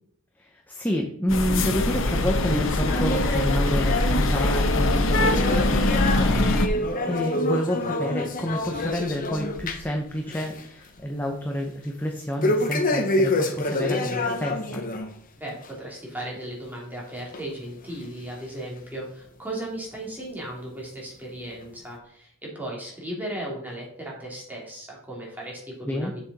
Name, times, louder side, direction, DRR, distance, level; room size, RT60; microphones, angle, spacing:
voice 1, 0.4-14.8 25.8-26.1, equal, 10° left, 1 dB, 0.8 m, -29 dB
sound 1, 1.3-6.7, left 2 dB, 65° left, 1.0 m, -23 dB
sound 2, 2.4-10.0 10.3-10.6 11.0-11.1 12.4-15.1 15.5-15.7 16.4-16.5 17.3-17.4 18.2-18.3, left 1 dB, 40° left, 1.0 m, -27 dB
voice 2, 15.4-26.2, right 1 dB, 10° right, -3 dB, 2.7 m, -36 dB
8.1 x 6.8 x 4.1 m, 0.67 s
head